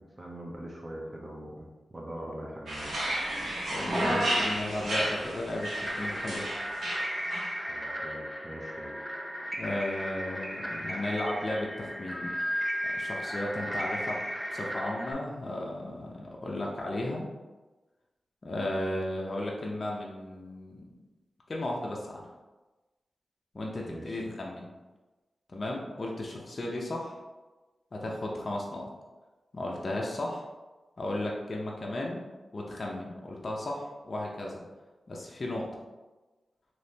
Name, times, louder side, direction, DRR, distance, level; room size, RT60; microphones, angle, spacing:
voice 1, 0.0-1.7 1.9-2.9 7.7-8.9 23.9-24.3, right 1 dB, 25° right, -2 dB, 0.9 m, -42 dB
sound 1, 2.7-7.5, right 1 dB, 80° right, 1.0 m, -31 dB
voice 2, 3.7-6.5 9.6-12.4 13.0-14.2 14.5-17.2 18.4-20.8 21.5-22.2 23.5-24.7 25.5-27.2 27.9-28.9 29.5-30.4 31.0-32.2 32.5-34.6 35.1-35.7, left 1 dB, 50° left, -2 dB, 0.6 m, -34 dB
sound 2, 5.5-15.1, equal, ahead, 0.5 m, -35 dB
3.2 x 3.0 x 2.7 m, 1.2 s
cardioid pair, 55°, 0 cm